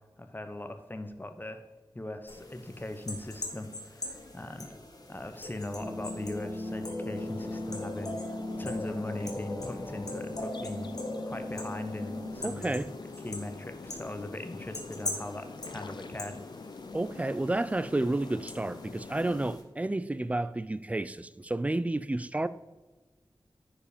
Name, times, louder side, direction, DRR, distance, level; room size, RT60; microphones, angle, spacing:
voice 1, 0.2-1.6 1.9-4.8 5.1-10.9 11.2-12.8 13.2-16.4, left 1 dB, 25° left, 0.9 m, -39 dB
sound 1, 2.3-19.6, left 2 dB, 50° left, 1.6 m, -42 dB
sound 2, 5.8-12.4, left 1 dB, 5° left, 2.7 m, -39 dB
sound 3, 7.1-19.6, left 4 dB, 70° left, 0.6 m, -45 dB
voice 2, 12.4-12.9 16.9-22.5, right 2 dB, 15° right, 0.4 m, -31 dB
10.0 x 5.0 x 5.1 m
wide cardioid pair, 80°, 8 cm